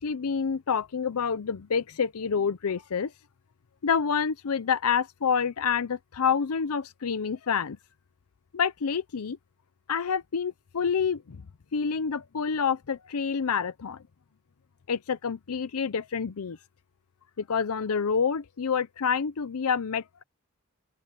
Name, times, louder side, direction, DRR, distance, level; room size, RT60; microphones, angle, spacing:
voice 1, 0.0-3.1 3.8-7.8 8.5-9.4 9.9-11.4 11.7-14.0 14.9-16.6 17.4-20.2, left 6 dB, 80° left, 0.6 m, -28 dB
open air
head